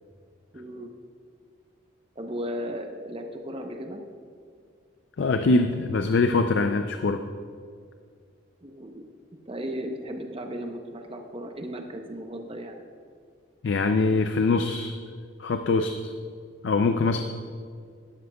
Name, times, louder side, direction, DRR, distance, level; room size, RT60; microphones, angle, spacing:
voice 1, 0.5-0.9 2.2-4.0 8.6-9.0 9.5-12.8, equal, 25° right, 4 dB, 0.7 m, -35 dB
voice 2, 5.2-7.2 13.6-14.9 15.4-16.1 16.6-17.2, left 3 dB, 60° left, 7 dB, 0.4 m, -23 dB
12.0 x 11.5 x 2.3 m, 2.1 s
head